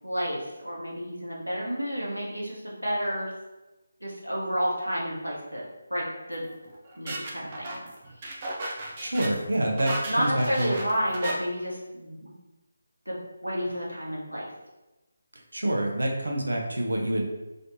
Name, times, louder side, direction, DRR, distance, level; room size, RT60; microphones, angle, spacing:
voice 1, 0.0-3.3 4.0-5.6 5.9-6.4 7.0-7.8 8.2-8.4 10.1-12.3 13.1-14.5 17.1-17.2, equal, 85° right, -5 dB, 1.1 m, -30 dB
sound 1, 6.3-11.3, right 2 dB, 30° right, 0.5 m, -36 dB
voice 2, 9.0-10.8 15.3-17.3, right 1 dB, 65° right, 0 dB, 0.7 m, -27 dB
3.2 x 2.8 x 2.7 m, 1.1 s
figure-of-eight pair, 155°, 0 cm